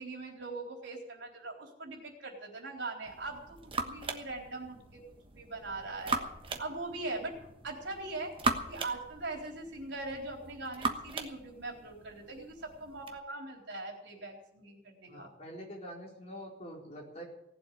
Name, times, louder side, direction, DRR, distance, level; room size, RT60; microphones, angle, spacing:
voice 1, 0.0-6.3 6.6-7.4 7.6-8.4 8.7-15.3, right 2 dB, 75° right, 1 dB, 3.9 m, -41 dB
sound 1, 3.1-13.2, right 3 dB, 25° right, 1.2 m, -39 dB
voice 2, 15.1-17.2, equal, 35° left, -2 dB, 4.4 m, -45 dB
18.0 x 7.9 x 9.3 m, 0.82 s
head